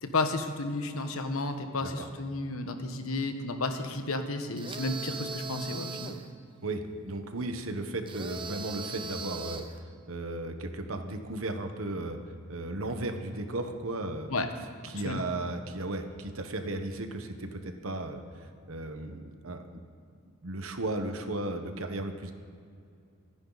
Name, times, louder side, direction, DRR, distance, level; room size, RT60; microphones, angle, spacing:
voice 1, 0.0-6.2 14.3-14.5 14.9-15.3, left 2 dB, 75° left, 7 dB, 1.3 m, -32 dB
sound 1, 4.6-6.3 8.1-9.8, right 4 dB, 25° right, 0.7 m, -39 dB
voice 2, 6.6-9.6 10.1-12.2 12.5-14.3 14.9-19.8 20.4-22.3, right 2 dB, 70° right, 6 dB, 1.3 m, -35 dB
25.0 x 10.5 x 4.1 m, 2.4 s
head